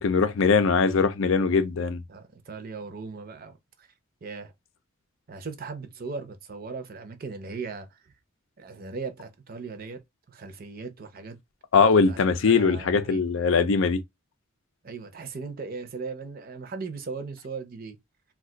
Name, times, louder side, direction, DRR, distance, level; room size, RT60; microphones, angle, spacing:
voice 1, 0.0-2.0 11.7-14.0, left 5 dB, 70° left, 0.5 m, -21 dB
voice 2, 2.1-3.9 4.2-4.5 5.3-8.0 8.6-10.0 10.3-11.4 12.1-12.2 12.5-13.2 14.8-18.0, right 4 dB, 45° right, 0.6 m, -38 dB
2.4 x 2.3 x 3.7 m
head